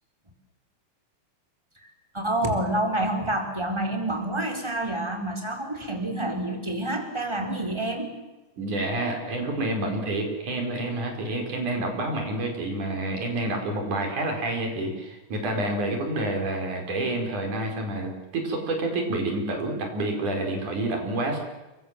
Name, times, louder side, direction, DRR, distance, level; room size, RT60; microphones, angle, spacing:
voice 1, 1.8-8.1, right 1 dB, 10° right, 3 dB, 4.1 m, -28 dB
voice 2, 8.6-21.4, right 2 dB, 70° right, 3 dB, 6.5 m, -28 dB
30.0 x 23.0 x 7.7 m, 1.1 s
omnidirectional pair, 3.7 m